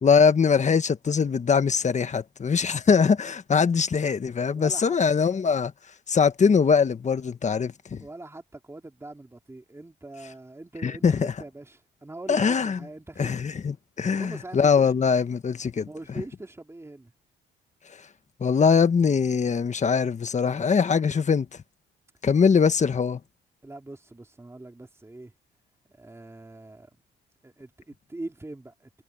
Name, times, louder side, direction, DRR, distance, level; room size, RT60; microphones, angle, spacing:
voice 1, 0.0-5.7 6.1-8.0 10.8-11.3 12.3-12.8 13.2-15.9 18.4-21.5 22.2-23.2, left 6 dB, 35° left, 1.5 m, -22 dB
voice 2, 4.5-5.0 8.0-13.3 14.1-14.9 15.8-17.1 23.6-25.3 25.9-26.9 27.4-29.0, right 2 dB, 15° right, 3.1 m, -42 dB
cardioid pair, 90°, 20 cm